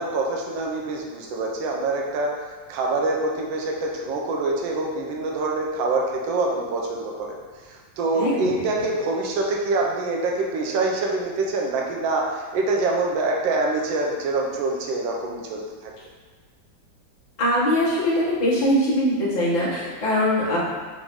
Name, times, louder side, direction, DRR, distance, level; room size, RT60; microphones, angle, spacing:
voice 1, 0.0-2.4 2.7-7.4 7.6-15.9 20.4-20.6, right 2 dB, 80° right, -1 dB, 1.3 m, -25 dB
voice 2, 8.2-8.6 17.4-20.6, equal, 30° left, -8 dB, 0.9 m, -22 dB
4.9 x 2.6 x 3.5 m, 1.4 s
omnidirectional pair, 2.1 m